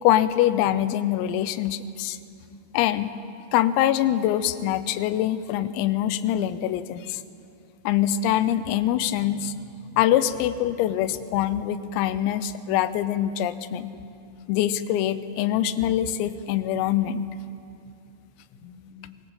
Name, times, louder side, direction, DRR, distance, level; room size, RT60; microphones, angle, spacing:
voice 1, 0.0-2.2 2.7-3.1 3.5-7.2 7.8-9.5 10.0-13.9 14.5-17.3, left 11 dB, 85° left, 13 dB, 3.5 m, -24 dB
voice 2, 13.9-14.7 18.5-19.2, left 7 dB, 60° left, 1 dB, 1.9 m, -49 dB
24.5 x 22.5 x 7.5 m, 2.5 s
omnidirectional pair, 6.0 m